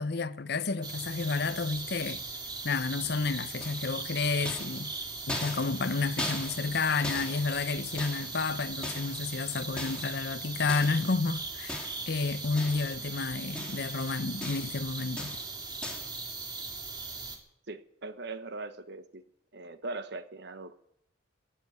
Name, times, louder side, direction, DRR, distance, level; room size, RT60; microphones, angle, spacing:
voice 1, 0.0-2.2 2.6-4.9 5.3-15.4, left 4 dB, 55° left, 0.7 m, -31 dB
sound 1, 0.8-17.4, right 3 dB, 20° right, 2.1 m, -39 dB
sound 2, 3.6-4.1 4.5-8.5 8.8-9.4 9.8-10.2 10.7-11.1 11.7-12.2 12.6-13.0 13.3-14.0 14.4-14.8 15.2-15.5 15.8-16.2, left 1 dB, 5° left, 2.8 m, -39 dB
voice 2, 17.7-19.2 19.5-20.8, right 3 dB, 55° right, 1.1 m, -40 dB
20.0 x 7.5 x 9.5 m
head